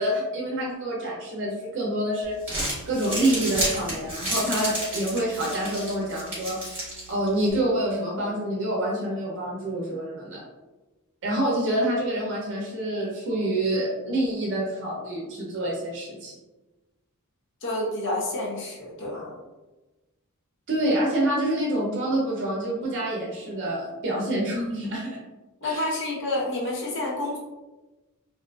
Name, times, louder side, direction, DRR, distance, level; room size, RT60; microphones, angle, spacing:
voice 1, 0.0-2.4 2.9-10.5 11.2-16.3 20.7-25.2 25.6-25.8, right 1 dB, 55° right, -3 dB, 0.6 m, -27 dB
Crumpling crinkling, 2.2-7.5, right 1 dB, 10° right, 1.0 m, -32 dB
voice 2, 17.6-19.4 25.6-27.4, left 1 dB, 55° left, -3 dB, 0.7 m, -29 dB
2.5 x 2.4 x 2.2 m, 1.1 s
head